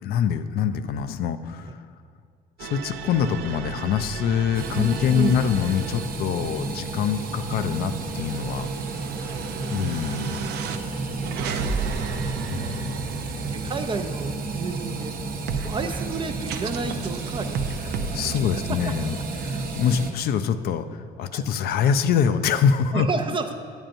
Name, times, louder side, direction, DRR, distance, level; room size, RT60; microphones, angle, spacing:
voice 1, 0.0-1.8 2.6-8.7 9.7-10.4 12.5-13.2 17.9-23.1, left 7 dB, 65° left, 10 dB, 0.4 m, -25 dB
sound 1, 2.6-6.1 6.6-14.8 15.5-18.4, right 5 dB, 80° right, 0.5 m, -34 dB
sound 2, 4.5-20.1, right 3 dB, 55° right, 0.8 m, -32 dB
voice 2, 4.7-5.4 9.2-9.5 11.3-12.1 13.4-15.2 15.6-18.1 18.6-18.9 21.3-21.4 22.9-23.5, right 4 dB, 30° right, 6 dB, 0.4 m, -31 dB
8.9 x 8.8 x 2.6 m, 2.3 s
cardioid pair, 110°, 17 cm